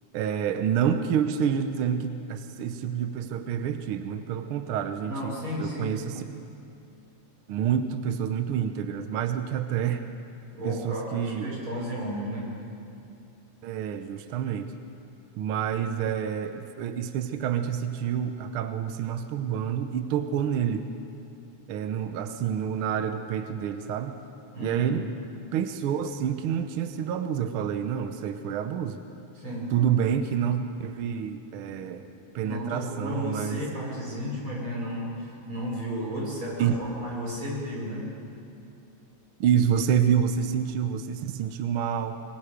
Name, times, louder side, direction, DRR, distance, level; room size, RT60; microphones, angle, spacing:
voice 1, 0.1-6.2 7.5-10.1 10.6-11.5 13.6-14.7 15.4-20.9 21.7-24.2 24.6-25.0 25.5-29.0 29.7-33.6 36.6-36.8 39.4-42.2, right 8 dB, 75° right, 8 dB, 1.2 m, -28 dB
voice 2, 5.0-6.0 10.5-12.5 24.5-25.0 29.3-29.7 32.4-38.1, equal, 40° right, -4 dB, 6.4 m, -33 dB
24.5 x 21.0 x 5.1 m, 2.6 s
omnidirectional pair, 3.4 m